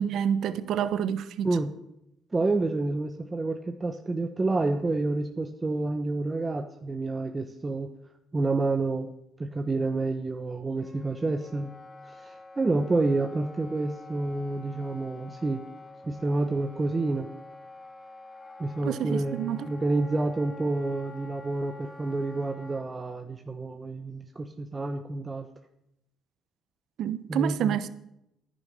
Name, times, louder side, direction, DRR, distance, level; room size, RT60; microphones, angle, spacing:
voice 1, 0.0-1.6 18.8-19.7 27.0-27.9, right 9 dB, 70° right, 0.8 m, -28 dB
voice 2, 2.3-7.9 8.3-9.1 9.4-11.7 12.0-15.6 16.0-17.3 18.6-25.5 27.3-27.8, right 2 dB, 25° right, 1.0 m, -29 dB
Wind instrument woodwind instrument, 10.8-22.8, left 3 dB, 30° left, 1.7 m, -48 dB
10.5 x 9.5 x 6.7 m
hypercardioid pair, 60°, 0 cm